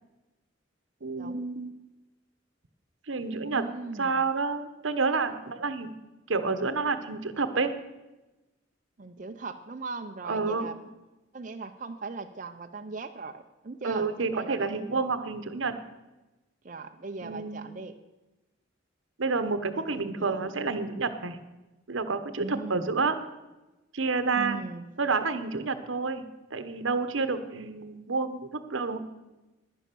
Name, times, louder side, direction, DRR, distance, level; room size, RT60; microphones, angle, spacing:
voice 1, 1.0-1.7 3.1-3.6 4.0-5.9 6.3-7.7 10.3-10.7 13.8-15.8 17.2-17.6 19.2-21.4 21.9-23.2 23.9-24.6 25.0-26.2 26.5-29.0, right 4 dB, 80° right, 11 dB, 1.0 m, -29 dB
voice 2, 3.3-4.2 9.0-10.7 11.3-14.8 16.6-17.9 19.7-20.5 22.4-22.8 24.3-24.8, right 3 dB, 40° right, 6 dB, 0.6 m, -39 dB
11.0 x 10.0 x 6.8 m, 1.1 s
head